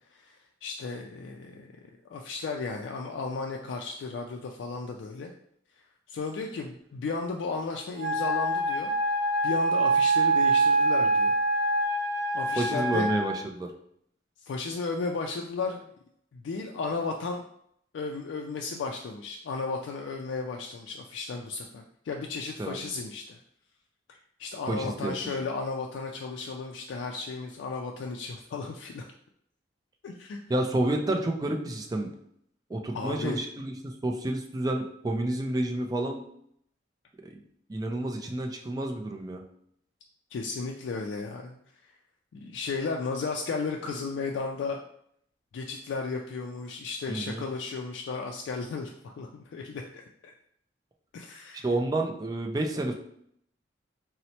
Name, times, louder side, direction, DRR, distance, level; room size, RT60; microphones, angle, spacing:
voice 1, 0.1-1.7 2.1-5.3 6.1-8.9 9.4-11.4 12.3-13.1 14.4-15.9 16.3-17.5 17.9-23.4 24.1-29.1 30.0-30.4 32.9-33.4 40.3-41.6 42.3-44.8 45.5-50.3 51.1-51.7, left 4 dB, 90° left, 1 dB, 0.3 m, -34 dB
Wind instrument woodwind instrument, 8.0-13.4, right 2 dB, 60° right, 0.6 m, -25 dB
voice 2, 12.6-13.7 22.6-22.9 24.7-25.1 30.5-32.1 32.7-36.2 37.2-37.3 37.7-39.4 47.1-47.4 51.6-52.9, right 1 dB, 20° right, 2 dB, 0.3 m, -30 dB
4.1 x 2.0 x 2.8 m, 0.70 s
head